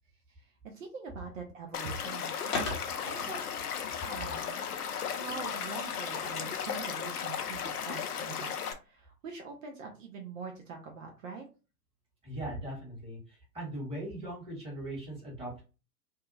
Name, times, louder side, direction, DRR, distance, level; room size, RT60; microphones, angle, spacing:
voice 1, 0.6-3.7 4.1-4.5 5.2-8.5 8.8-11.5, right 4 dB, 55° right, 2 dB, 0.7 m, -44 dB
Stream / Liquid, 1.7-8.7, left 7 dB, 70° left, 0.6 m, -36 dB
Skateboard, 2.5-8.0, left 4 dB, 25° left, 0.7 m, -43 dB
voice 2, 12.2-15.6, right 1 dB, 10° right, -5 dB, 1.5 m, -39 dB
2.7 x 2.3 x 2.5 m, 0.32 s
hypercardioid pair, 120°, 48 cm